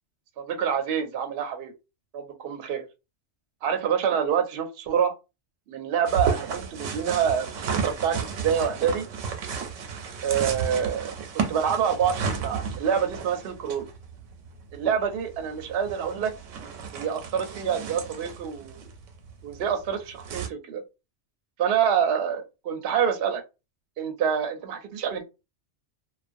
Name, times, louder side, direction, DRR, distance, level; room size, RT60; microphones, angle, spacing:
voice 1, 0.4-1.7 2.1-2.9 3.6-5.1 5.7-7.5 7.8-9.0 10.2-13.9 14.7-16.3 16.9-18.8 19.4-20.8 21.6-23.4 24.0-25.2, right 8 dB, 65° right, 0.7 m, -26 dB
sound 1, 6.1-20.5, right 6 dB, 90° right, 0.9 m, -33 dB
2.4 x 2.2 x 2.5 m
omnidirectional pair, 1.2 m